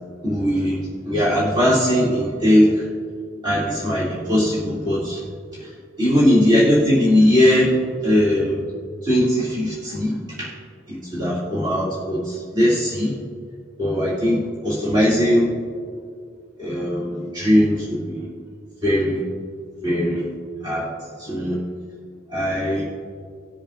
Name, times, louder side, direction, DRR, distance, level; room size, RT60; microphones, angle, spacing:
voice 1, 0.2-2.9 3.4-5.2 5.5-8.6 9.0-10.5 10.9-13.2 13.8-15.5 16.6-18.3 18.8-19.2 19.8-20.3 20.6-20.9 21.2-21.6 22.3-22.8, equal, 20° right, -9 dB, 2.4 m, -20 dB
20.0 x 7.5 x 2.5 m, 2.2 s
head